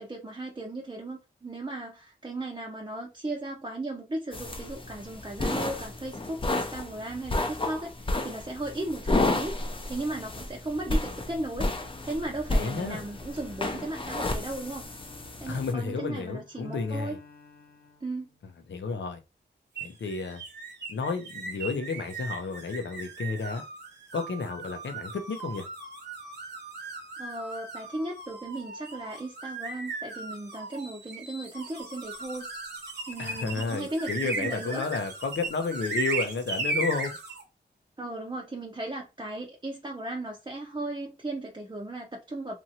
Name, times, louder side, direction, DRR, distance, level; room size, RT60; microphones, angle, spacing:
voice 1, 0.0-11.7 12.1-14.9 15.4-17.2 18.0-18.3 27.2-32.5 33.1-34.8 38.0-42.6, right 2 dB, 25° right, 0.5 m, -36 dB
sound 1, 4.3-15.7, left 2 dB, 30° left, 0.5 m, -31 dB
Bowed string instrument, 11.5-18.7, left 4 dB, 55° left, 0.9 m, -55 dB
voice 2, 12.5-13.0 15.5-17.2 18.7-19.2 19.8-20.4 20.9-23.6 24.1-25.7 33.2-37.2, left 4 dB, 85° left, 0.6 m, -32 dB
sound 2, 19.7-37.4, right 3 dB, 65° right, 0.9 m, -37 dB
2.9 x 2.5 x 2.7 m
wide cardioid pair, 90°, 19 cm